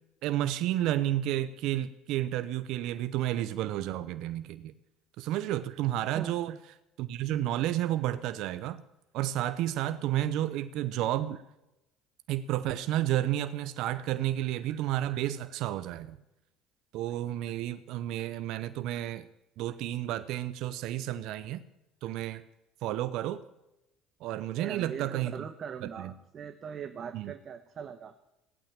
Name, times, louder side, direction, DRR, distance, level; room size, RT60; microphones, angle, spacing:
voice 1, 0.2-4.7 5.2-6.6 7.0-8.8 9.1-11.4 12.3-16.2 16.9-19.3 19.6-21.6 22.0-22.4 22.8-23.4 24.2-25.4 26.0-26.1 27.1-27.3, right 13 dB, 65° right, 13 dB, 0.8 m, -31 dB
voice 2, 24.6-28.1, right 7 dB, 45° right, 8 dB, 1.1 m, -40 dB
16.5 x 8.8 x 8.8 m, 0.92 s
hypercardioid pair, 75°, 0 cm